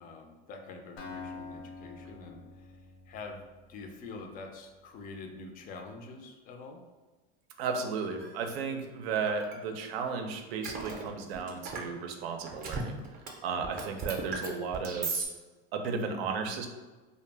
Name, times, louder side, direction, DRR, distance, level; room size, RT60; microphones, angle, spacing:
voice 1, 0.0-3.4 3.7-6.8, left 3 dB, 30° left, 3 dB, 0.4 m, -46 dB
Acoustic guitar, 1.0-4.8, left 4 dB, 70° left, 0.8 m, -47 dB
voice 2, 7.6-13.0 13.4-15.2 15.7-16.7, right 5 dB, 85° right, 5 dB, 0.5 m, -34 dB
sound 1, 8.2-8.3 9.2-9.6 10.6-11.9 12.4-13.3 13.5-15.3, right 4 dB, 30° right, 0.5 m, -36 dB
2.2 x 2.0 x 3.2 m, 1.2 s
supercardioid pair, 120°, 30 cm